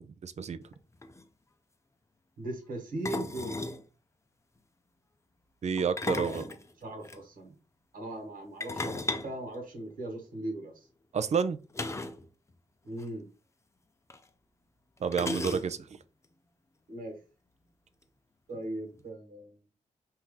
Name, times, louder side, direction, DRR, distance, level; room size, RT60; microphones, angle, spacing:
voice 1, 0.2-0.6 5.6-6.4 11.1-11.6 15.0-15.8, right 6 dB, 55° right, 0.6 m, -29 dB
sound 1, 0.7-0.8 1.0-1.2 3.0-3.8 5.8-7.2 8.6-10.3 11.7-12.3 12.5-12.6 12.9-13.1 14.1-14.2 15.1-16.0, left 2 dB, 20° left, 0.6 m, -35 dB
voice 2, 2.4-3.6 6.0-6.5 6.8-7.5 7.9-10.9 12.8-13.3 16.9-17.2 18.5-19.6, right 1 dB, 75° right, 1.6 m, -39 dB
4.5 x 2.8 x 3.8 m
cardioid pair, 85°, 14 cm